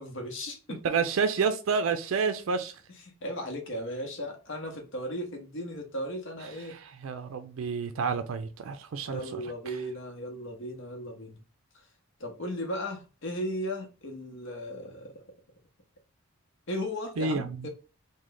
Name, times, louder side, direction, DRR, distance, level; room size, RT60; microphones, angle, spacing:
voice 1, 0.0-0.8 3.2-6.8 9.1-11.4 12.2-15.2 16.7-17.7, equal, 60° left, 0.8 m, -36 dB
voice 2, 0.7-2.7 6.7-9.4 17.2-17.7, right 5 dB, 65° right, 0.4 m, -29 dB
3.1 x 2.1 x 3.8 m
head